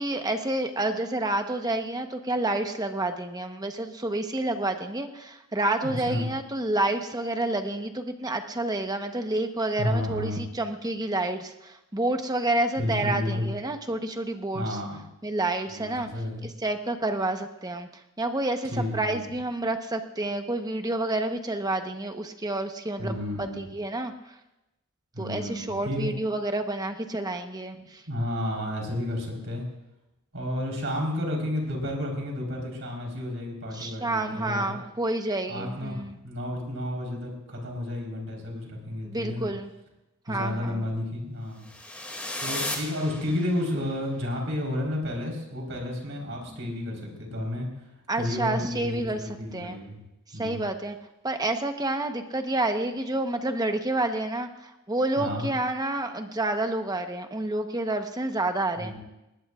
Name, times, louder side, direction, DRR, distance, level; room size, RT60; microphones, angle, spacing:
voice 1, 0.0-14.8 15.2-16.1 16.4-17.9 18.2-24.1 25.2-28.0 33.7-36.2 39.0-39.7 40.3-40.9 46.5-46.6 48.1-49.8 50.3-51.0 51.2-59.0, right 2 dB, 20° right, 6 dB, 1.0 m, -29 dB
voice 2, 5.8-6.3 9.8-10.4 12.8-13.5 14.5-15.0 15.7-16.5 18.7-19.3 23.0-23.7 25.1-26.1 28.1-29.6 30.3-34.7 35.5-39.5 40.3-41.7 42.4-47.7 48.2-50.0 50.3-50.6 55.2-55.5 58.8-59.0, left 1 dB, 65° right, -1 dB, 4.2 m, -31 dB
sound 1, 41.6-43.8, left 1 dB, 5° left, 2.4 m, -35 dB
20.0 x 19.5 x 2.5 m, 0.94 s
head